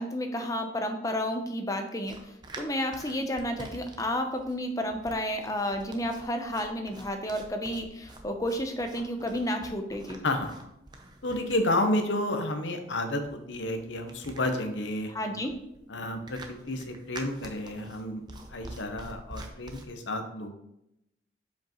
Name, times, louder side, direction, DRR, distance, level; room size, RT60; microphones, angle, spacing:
voice 1, 0.0-10.2 15.1-15.5, equal, 20° left, 5 dB, 0.6 m, -31 dB
sound 1, 2.0-19.8, right 2 dB, 25° right, 0.7 m, -47 dB
voice 2, 10.2-10.5 11.2-15.4 15.9-20.6, left 1 dB, 80° left, 6 dB, 0.9 m, -31 dB
7.4 x 5.1 x 3.0 m, 0.83 s
head